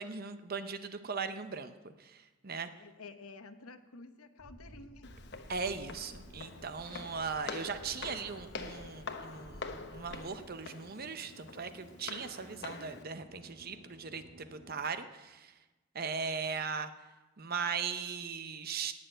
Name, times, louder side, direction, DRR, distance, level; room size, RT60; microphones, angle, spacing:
voice 1, 0.0-2.7 5.5-15.5 15.9-16.9 17.4-18.9, right 5 dB, 45° right, 10 dB, 0.7 m, -39 dB
voice 2, 2.8-5.1, left 3 dB, 80° left, 9 dB, 1.1 m, -51 dB
sound 1, 4.4-10.3, equal, 25° right, 1.6 m, -54 dB
Walk footsteps, 5.0-13.0, left 4 dB, 50° left, 1.0 m, -46 dB
sound 2, 5.8-14.8, equal, 85° right, 3.7 m, -58 dB
18.0 x 6.7 x 9.0 m, 1.2 s
head